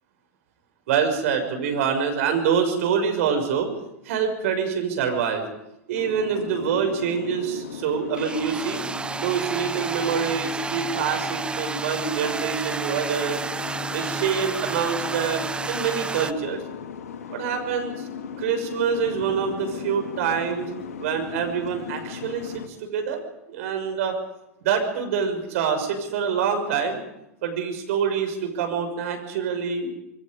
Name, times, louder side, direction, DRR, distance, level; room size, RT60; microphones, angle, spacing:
voice 1, 0.9-3.7 4.0-5.4 5.9-8.8 9.1-13.4 13.9-16.6 17.3-18.1 18.4-20.7 21.0-23.2 23.5-24.1 24.6-27.0 27.4-29.9, right 7 dB, 60° right, 5 dB, 6.3 m, -26 dB
Boat Water vehicle, 5.9-22.7, left 7 dB, 70° left, 2.5 m, -38 dB
sound 1, 8.1-16.3, right 4 dB, 10° right, 0.7 m, -31 dB
27.5 x 21.5 x 5.3 m, 0.87 s
hypercardioid pair, 95°, 9 cm